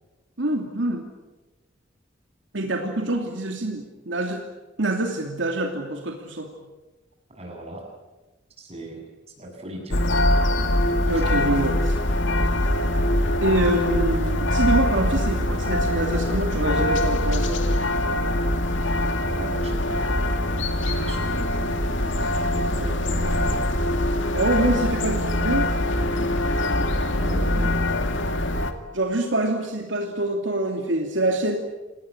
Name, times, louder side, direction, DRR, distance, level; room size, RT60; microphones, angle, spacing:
voice 1, 0.4-1.1 2.5-4.4 4.8-6.5 11.0-11.8 13.4-17.6 24.3-25.7 28.9-31.6, right 1 dB, 75° right, 2 dB, 2.7 m, -25 dB
voice 2, 7.3-7.8 8.6-9.0 9.4-10.0 11.1-11.7 13.3-14.0 19.2-20.3 21.0-23.7 27.2-27.9, equal, 35° right, 1 dB, 7.9 m, -38 dB
sound 1, 9.9-28.7, left 1 dB, 75° left, 2.3 m, -23 dB
28.0 x 20.0 x 8.8 m, 1.1 s
head